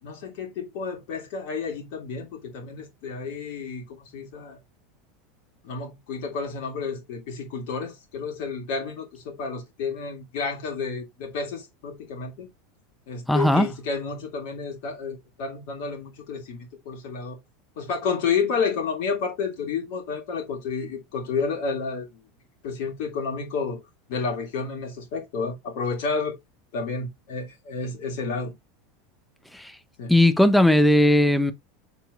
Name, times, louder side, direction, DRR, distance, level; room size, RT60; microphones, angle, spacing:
voice 1, 0.0-4.6 5.6-12.5 13.1-17.4 17.8-22.3 22.6-23.8 24.1-26.4 26.7-28.5 30.0-30.1, left 5 dB, 60° left, 2.8 m, -30 dB
voice 2, 13.3-13.7 29.5-29.7 30.1-31.5, left 1 dB, 5° left, 1.1 m, -18 dB
7.1 x 5.8 x 2.6 m
figure-of-eight pair, 80°, 0 cm